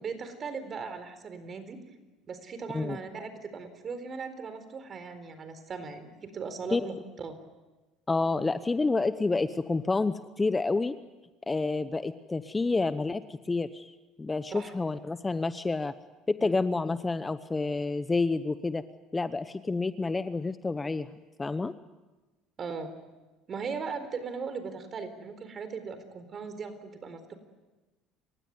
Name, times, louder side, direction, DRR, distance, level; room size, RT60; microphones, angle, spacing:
voice 1, 0.0-1.8 2.3-7.4 14.5-14.7 16.4-16.6 22.6-22.9 23.5-27.4, right 5 dB, 40° right, 10 dB, 4.2 m, -38 dB
voice 2, 8.1-10.9 11.5-13.9 14.2-15.9 16.3-18.8 19.1-21.1 21.4-21.7, left 3 dB, 20° left, 13 dB, 0.9 m, -29 dB
29.0 x 16.5 x 9.5 m, 1.2 s
supercardioid pair, 85°, 0 cm